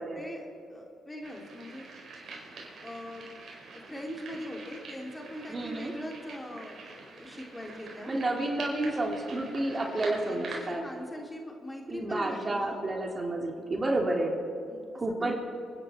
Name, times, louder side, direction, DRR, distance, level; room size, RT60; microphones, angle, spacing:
voice 1, 0.0-1.8 2.8-3.3 3.7-8.1 9.7-12.9 14.7-15.3, left 1 dB, 15° left, 1 dB, 2.9 m, -41 dB
sound 1, 1.2-10.8, right 3 dB, 60° right, 4.6 m, -45 dB
voice 2, 5.5-5.9 8.1-10.8 11.9-14.3 14.9-15.3, right 2 dB, 30° right, 1 dB, 2.6 m, -30 dB
28.5 x 10.5 x 4.3 m, 2.5 s
supercardioid pair, 65°, 0 cm